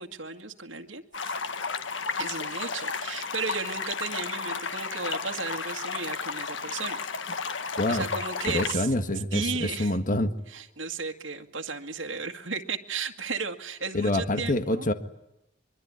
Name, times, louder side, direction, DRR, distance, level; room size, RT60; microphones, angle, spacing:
voice 1, 0.0-1.4 2.2-7.4 7.9-8.9 9.3-10.0 10.5-14.9, right 5 dB, 80° right, 4 dB, 2.0 m, -35 dB
sound 1, 1.1-8.7, left 5 dB, 75° left, 1.6 m, -33 dB
voice 2, 7.8-8.1 8.5-10.3 13.9-14.9, left 1 dB, 45° left, 9 dB, 1.7 m, -26 dB
24.5 x 23.5 x 9.7 m, 0.86 s
head